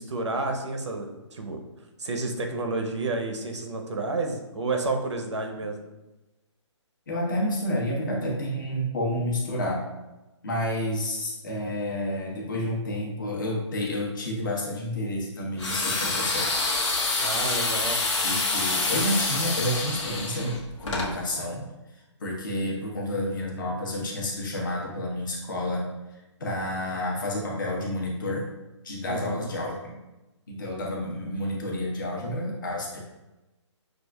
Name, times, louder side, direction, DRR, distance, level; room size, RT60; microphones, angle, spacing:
voice 1, 0.0-1.6 2.0-5.8 17.2-18.0 29.1-29.5, right 3 dB, 65° right, 3 dB, 0.7 m, -30 dB
voice 2, 7.1-9.9 10.4-16.6 18.2-21.7 21.9-28.5 28.8-30.0 30.5-33.0, left 1 dB, 40° left, -3 dB, 0.9 m, -30 dB
sound 1, 15.6-21.1, left 3 dB, 75° left, 1.1 m, -27 dB
6.4 x 2.4 x 2.3 m, 1.0 s
hypercardioid pair, 170°, 16 cm